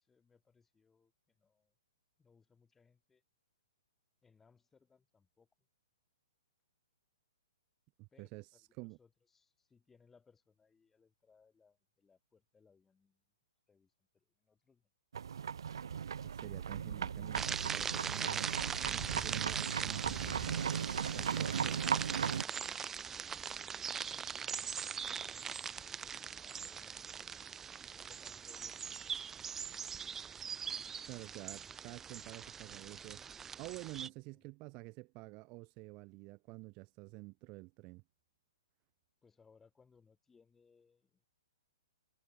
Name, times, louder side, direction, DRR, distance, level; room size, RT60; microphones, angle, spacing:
voice 1, 0.0-1.7 2.2-3.2 4.2-5.5 8.1-13.2 13.7-14.9 20.9-27.6 27.9-28.8 34.0-34.5 39.2-41.3, left 5 dB, 10° left, 8.0 m, -68 dB
voice 2, 8.0-9.0 16.2-18.5 18.8-20.1 21.2-21.7 31.0-38.0, right 26 dB, 30° right, 1.9 m, -49 dB
sound 1, 15.1-22.4, right 7 dB, 75° right, 1.2 m, -37 dB
sound 2, 17.3-34.1, right 7 dB, 15° right, 0.9 m, -41 dB
hypercardioid pair, 140°, 2 cm